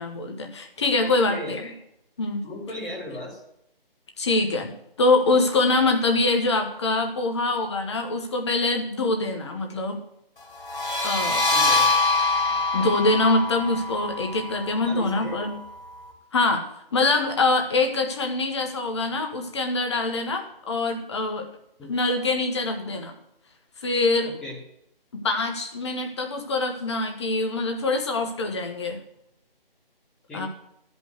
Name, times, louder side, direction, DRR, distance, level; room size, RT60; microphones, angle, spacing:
voice 1, 0.0-1.7 2.2-2.4 4.2-4.7 5.0-10.0 11.0-11.4 12.7-15.6 16.3-16.6 16.9-21.4 21.9-23.1 23.8-24.3 25.1-29.0 30.3-30.5, left 2 dB, 30° left, 4 dB, 1.3 m, -24 dB
voice 2, 1.0-1.5 2.4-3.4 11.5-11.9 12.5-12.6 14.8-15.4 21.8-21.9 24.2-24.6 30.3-30.5, left 1 dB, ahead, -8 dB, 0.8 m, -36 dB
sound 1, 10.6-16.0, left 3 dB, 60° left, 2.4 m, -25 dB
11.0 x 5.4 x 8.0 m, 0.79 s
figure-of-eight pair, 160°, 29 cm